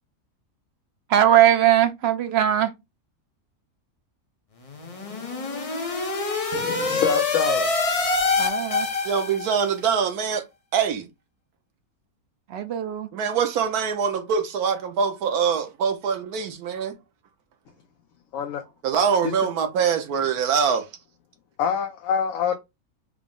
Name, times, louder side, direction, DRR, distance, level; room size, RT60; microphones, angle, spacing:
voice 1, 1.1-2.7 8.4-8.9 12.5-13.1, right 11 dB, 65° right, 0.7 m, -20 dB
sound 1, 4.7-9.7, left 3 dB, 40° left, 0.5 m, -25 dB
voice 2, 6.5-7.7 18.3-18.6 19.2-19.3 21.6-22.5, left 7 dB, 70° left, 1.0 m, -25 dB
voice 3, 9.0-10.4 10.7-11.0 13.1-16.9 18.8-20.8, right 6 dB, 85° right, 1.2 m, -24 dB
4.8 x 2.0 x 3.6 m
omnidirectional pair, 1.6 m